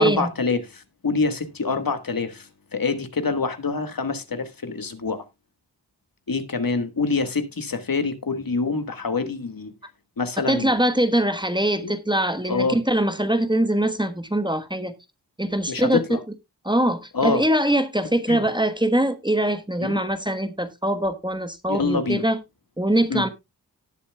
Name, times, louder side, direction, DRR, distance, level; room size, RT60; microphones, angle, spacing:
voice 1, 0.0-5.2 6.3-9.7 10.2-10.7 11.8-11.9 12.5-12.8 15.7-16.2 17.1-17.4 18.3-18.4 19.8-20.0 21.7-22.2 23.1-23.2, left 4 dB, 60° left, 1.5 m, -26 dB
voice 2, 10.5-14.9 15.4-16.0 16.6-22.4 22.8-23.3, right 1 dB, 10° right, 1.2 m, -22 dB
18.5 x 7.1 x 2.2 m
cardioid pair, 45°, 39 cm